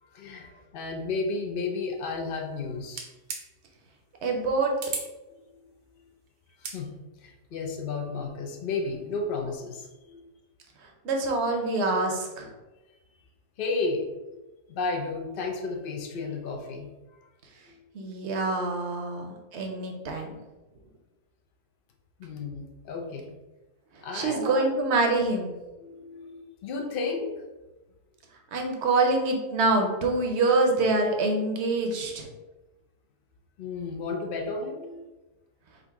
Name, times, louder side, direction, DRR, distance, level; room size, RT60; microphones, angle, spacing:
voice 1, 0.0-3.1 6.6-10.3 13.6-14.4 14.7-16.9 17.2-17.3 22.2-23.3 24.0-24.7 25.8-27.4 33.6-35.1, left 3 dB, 90° left, 1 dB, 0.4 m, -33 dB
sound 1, 2.9-3.4 4.8-5.1 6.5-6.8, right 5 dB, 80° right, 1.3 m, -34 dB
voice 2, 4.2-4.7 11.0-12.5 17.9-20.4 23.9-25.5 28.5-32.3, right 3 dB, 55° right, 2 dB, 0.8 m, -25 dB
3.8 x 2.6 x 4.6 m, 1.1 s
omnidirectional pair, 1.7 m